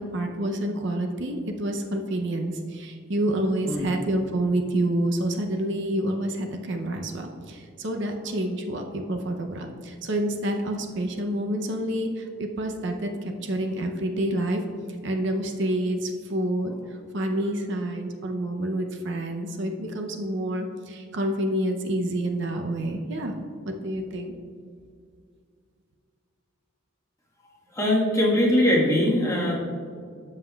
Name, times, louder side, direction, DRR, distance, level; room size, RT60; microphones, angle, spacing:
voice 1, 0.0-14.6 15.0-16.7 17.1-23.3 23.6-24.4, right 1 dB, 60° right, 4 dB, 0.6 m, -28 dB
voice 2, 27.7-29.5, left 1 dB, 15° left, -5 dB, 1.4 m, -21 dB
12.5 x 5.7 x 2.3 m, 2.2 s
head